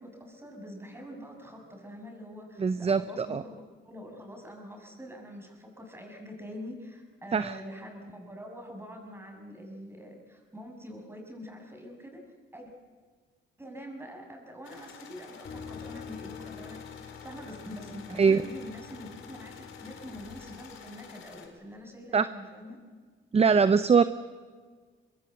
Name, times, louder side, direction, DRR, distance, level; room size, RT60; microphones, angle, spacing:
voice 1, 0.0-12.2 12.5-12.7 13.6-22.8, equal, 10° right, 2 dB, 7.1 m, -44 dB
voice 2, 2.6-3.4 7.3-7.6 18.2-18.4 22.1-22.3 23.3-24.0, right 5 dB, 30° right, 13 dB, 0.8 m, -22 dB
sound 1, 14.6-21.5, left 7 dB, 80° left, 4.2 m, -50 dB
sound 2, 15.4-21.3, left 6 dB, 50° left, 2.9 m, -47 dB
24.5 x 22.0 x 8.0 m, 1.5 s
cardioid pair, 90°, 20 cm